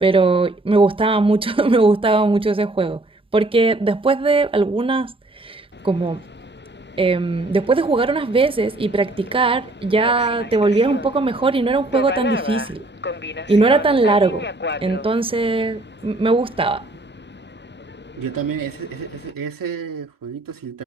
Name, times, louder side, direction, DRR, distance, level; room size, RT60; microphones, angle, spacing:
voice 1, 0.0-3.0 3.3-6.2 7.0-12.8 13.5-14.5 14.8-16.8, right 3 dB, 15° right, 0.9 m, -19 dB
Subway metro underground, 5.7-19.3, left 3 dB, 30° left, 6.7 m, -33 dB
voice 2, 18.2-20.8, right 7 dB, 75° right, 2.1 m, -29 dB
wide cardioid pair, 125°, 34 cm